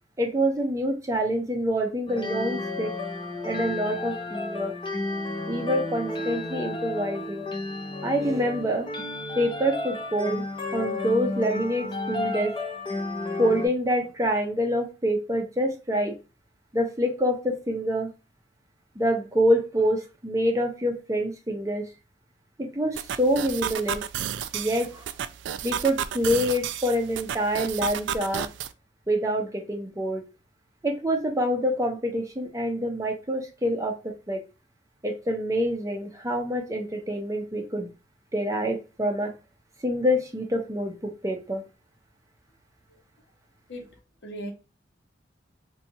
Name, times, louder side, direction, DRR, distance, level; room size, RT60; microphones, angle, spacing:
voice 1, 0.2-2.9 3.4-4.7 5.5-7.5 8.0-8.9 9.4-10.4 10.7-12.5 13.4-16.2 16.7-18.1 19.0-21.9 22.6-24.0 24.5-25.0 25.6-28.5 29.1-30.2 30.8-34.4 35.0-37.9 38.3-39.3 39.8-41.6, equal, 20° right, 0.6 m, -26 dB
sound 1, 2.1-13.7, left 2 dB, 25° left, 0.6 m, -32 dB
sound 2, 23.0-28.7, right 9 dB, 85° right, 0.3 m, -32 dB
voice 2, 42.9-43.0 43.7-43.9 44.2-44.5, equal, 70° left, 0.9 m, -37 dB
4.1 x 2.3 x 2.7 m
head